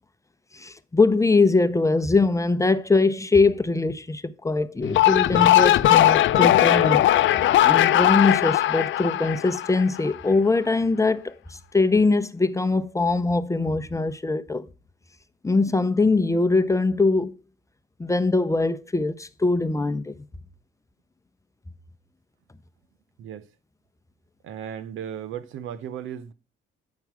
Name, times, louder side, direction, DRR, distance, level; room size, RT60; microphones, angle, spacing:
voice 1, 0.5-7.0 7.6-14.7 15.4-17.4 18.0-20.1, left 3 dB, 15° left, 0.7 m, -22 dB
sound 1, 4.8-10.1, left 13 dB, 75° left, 0.6 m, -19 dB
voice 2, 24.4-26.3, right 9 dB, 80° right, 0.9 m, -35 dB
9.5 x 4.6 x 6.1 m
cardioid pair, 90°, 20 cm